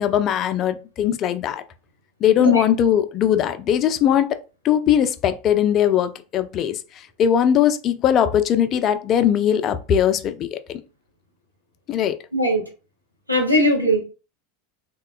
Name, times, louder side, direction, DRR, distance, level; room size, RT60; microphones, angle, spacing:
voice 1, 0.0-1.6 2.2-4.3 4.6-6.8 7.2-10.8 11.9-12.2, left 9 dB, 35° left, 0.3 m, -20 dB
voice 2, 12.3-12.7 13.3-14.0, equal, 90° right, 0.6 m, -19 dB
3.4 x 2.1 x 2.3 m
figure-of-eight pair, 80°, 0 cm